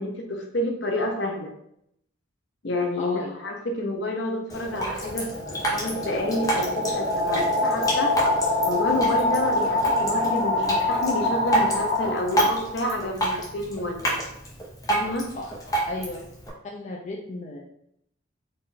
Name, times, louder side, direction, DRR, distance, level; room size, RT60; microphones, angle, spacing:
voice 1, 0.0-1.5 2.6-8.1 8.7-14.1 14.9-15.3, left 1 dB, 65° left, 2 dB, 0.8 m, -29 dB
voice 2, 3.0-3.4 15.3-15.5 15.9-16.2 16.7-17.6, left 2 dB, 40° left, -1 dB, 0.5 m, -34 dB
Drip, 4.5-16.5, right 1 dB, 20° left, 0.9 m, -29 dB
sound 1, 5.0-12.7, left 2 dB, 65° right, 1.5 m, -25 dB
sound 2, 5.9-6.4 7.1-7.6 8.7-9.2 10.2-10.8 12.0-12.7, equal, 15° right, 0.6 m, -44 dB
4.3 x 2.5 x 3.8 m, 0.74 s
head